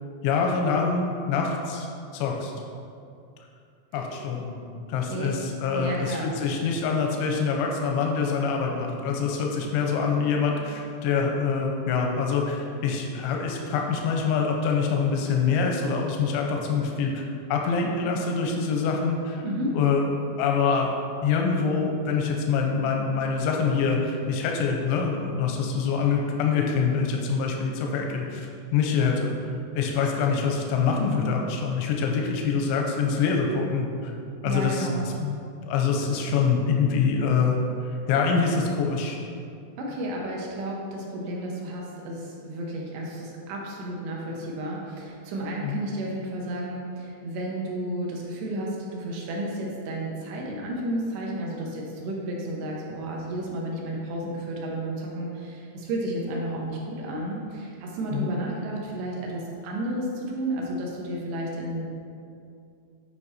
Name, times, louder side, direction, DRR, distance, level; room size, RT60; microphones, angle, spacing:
voice 1, 0.2-1.9 2.1-2.5 3.9-4.6 4.9-17.2 17.5-19.4 19.7-20.9 21.2-29.3 29.7-34.1 34.4-35.4 35.7-37.6 38.1-39.2 45.6-45.8 58.1-58.3, left 5 dB, 90° left, 1 dB, 3.1 m, -25 dB
voice 2, 5.7-6.4 19.4-19.8 34.4-35.1 39.8-61.9, right 1 dB, 75° right, -2 dB, 2.8 m, -32 dB
9.6 x 5.3 x 4.2 m, 2.5 s
omnidirectional pair, 5.3 m